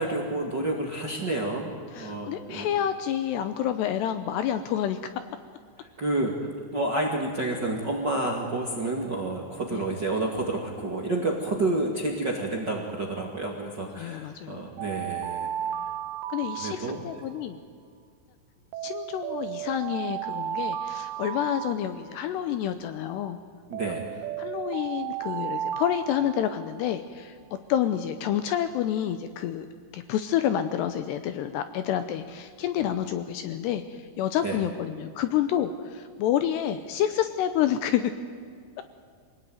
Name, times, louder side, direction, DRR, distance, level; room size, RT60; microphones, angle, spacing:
voice 1, 0.0-2.7 6.0-6.4 6.7-15.5 16.6-17.1 23.7-24.1 34.4-34.6, right 2 dB, 40° right, 0 dB, 1.6 m, -29 dB
voice 2, 1.9-5.0 9.7-9.8 13.9-14.6 16.3-17.6 18.8-23.4 24.4-27.4 27.7-29.7 29.9-38.1, left 10 dB, 75° left, 10 dB, 2.6 m, -28 dB
Alarm, 14.8-17.4 18.7-22.4 23.7-26.9, right 11 dB, 90° right, 2.2 m, -34 dB
25.5 x 18.5 x 9.3 m, 2.1 s
omnidirectional pair, 5.5 m